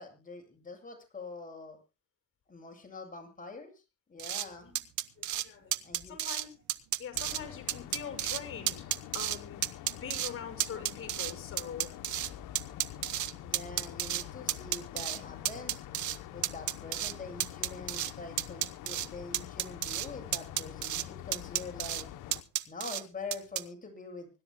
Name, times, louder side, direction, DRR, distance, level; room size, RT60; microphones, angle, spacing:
voice 1, 0.0-1.8 2.5-3.7 4.1-4.7 5.8-6.2 13.4-15.8 16.3-22.1 22.7-24.3, left 3 dB, 25° left, 3 dB, 7.8 m, -44 dB
sound 1, 4.2-4.5 4.8-5.5 5.7-6.4 6.7-7.4 7.7-8.4 8.7-9.4 9.6-10.3 10.6-12.3 12.6-14.2 14.5-15.2 15.5-16.2 16.4-17.1 17.4-18.1 18.4-19.1 19.3-20.1 20.3-21.0 21.3-22.0 22.3-23.0 23.3-23.6, right 13 dB, 75° right, 1.1 m, -32 dB
voice 2, 5.2-5.8 6.1-6.5 7.0-8.8 9.1-9.6 9.9-11.9, left 7 dB, 45° left, 7 dB, 6.4 m, -43 dB
sound 2, 7.1-22.4, left 13 dB, 90° left, 1.1 m, -46 dB
25.0 x 12.0 x 2.2 m, 0.29 s
cardioid pair, 90°, 30 cm